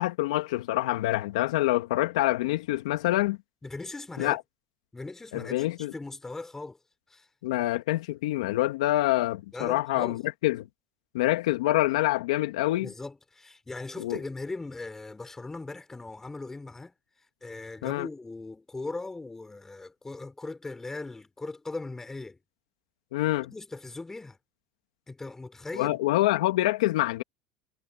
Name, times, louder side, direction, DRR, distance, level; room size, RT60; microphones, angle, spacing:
voice 1, 0.0-3.4 4.2-4.4 5.3-5.9 7.4-10.7 11.1-12.9 14.0-14.2 17.8-18.1 23.1-23.5 25.8-27.2, left 17 dB, 85° left, 2.1 m, -26 dB
voice 2, 3.6-4.4 4.9-6.8 7.1-7.3 9.5-10.2 12.8-16.9 17.4-22.4 23.4-24.4 25.1-26.0, left 3 dB, 10° left, 4.5 m, -39 dB
supercardioid pair, 105°, 3 cm